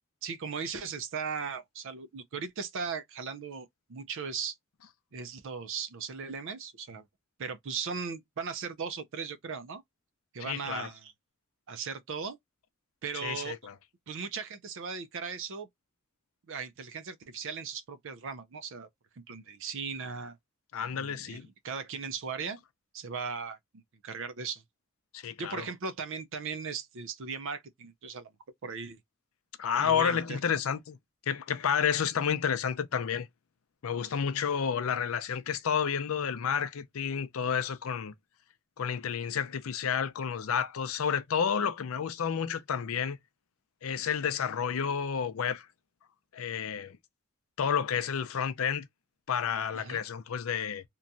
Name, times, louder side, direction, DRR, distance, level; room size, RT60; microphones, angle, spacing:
voice 1, 0.2-4.5 5.1-7.0 7.4-9.8 10.3-11.1 11.7-12.4 13.0-13.6 14.1-15.7 16.5-18.9 19.3-20.4 20.9-22.6 22.9-24.6 25.4-28.3 28.6-29.0 29.8-30.4 49.7-50.0, right 5 dB, 65° right, 0.5 m, -38 dB
voice 2, 10.4-10.9 13.2-13.7 20.7-21.5 25.1-25.7 29.6-31.0 31.3-33.3 33.8-38.1 38.8-43.2 43.8-45.7 46.3-47.0 47.6-48.9 49.3-50.8, left 7 dB, 75° left, 0.5 m, -30 dB
2.9 x 2.2 x 2.5 m
head